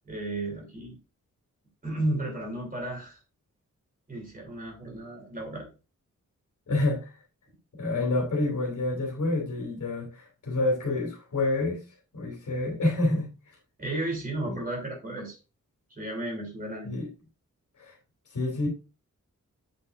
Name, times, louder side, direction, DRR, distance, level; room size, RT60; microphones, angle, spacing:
voice 1, 0.1-1.0 1.8-3.2 4.1-5.7 13.8-15.4 15.9-16.9, right 1 dB, 30° right, 3.1 m, -33 dB
voice 2, 6.7-7.1 7.7-11.8 12.1-13.3 14.5-14.6 16.8-17.1 17.8-18.0 18.3-18.7, left 2 dB, 75° left, 3.0 m, -28 dB
8.0 x 6.2 x 2.5 m
wide cardioid pair, 155°, 31 cm